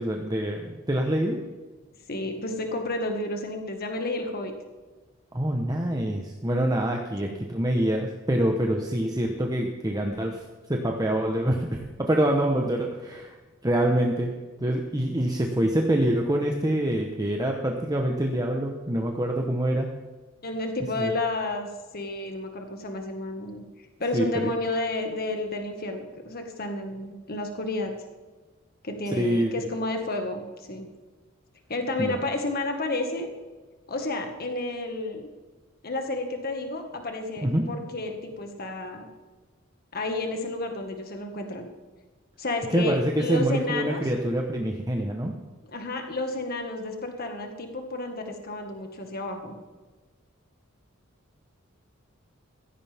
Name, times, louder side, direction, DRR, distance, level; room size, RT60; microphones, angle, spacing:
voice 1, 0.0-1.4 5.3-13.4 13.6-14.3 14.6-19.9 21.0-21.1 24.1-24.5 29.1-29.5 32.0-32.2 37.4-37.6 42.7-45.3, right 1 dB, 20° right, 1 dB, 1.1 m, -26 dB
voice 2, 2.1-4.5 7.2-7.4 15.6-15.7 20.4-27.9 28.8-30.9 31.7-33.3 33.9-35.3 35.8-39.1 39.9-41.7 42.4-44.0 45.7-49.6, left 2 dB, 50° left, 4 dB, 1.8 m, -31 dB
16.0 x 15.5 x 3.6 m, 1.3 s
head